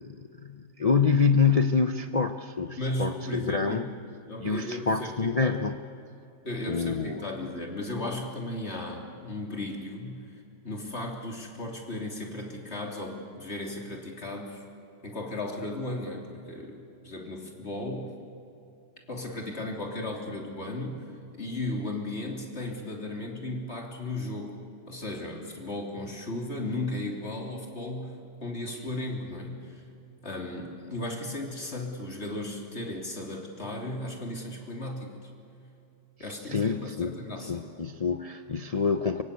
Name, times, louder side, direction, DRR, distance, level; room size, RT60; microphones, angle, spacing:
voice 1, 0.0-3.9 4.4-5.7 6.7-7.3 36.5-37.1 37.5-39.2, left 5 dB, 75° left, 7 dB, 0.3 m, -26 dB
voice 2, 2.8-3.9 4.3-5.6 6.4-14.6 15.0-18.2 19.1-21.1 21.4-24.6 24.9-29.8 30.2-35.3 36.2-37.6, left 1 dB, 35° left, 0 dB, 3.5 m, -35 dB
25.0 x 24.0 x 8.4 m, 2.7 s
omnidirectional pair, 1.9 m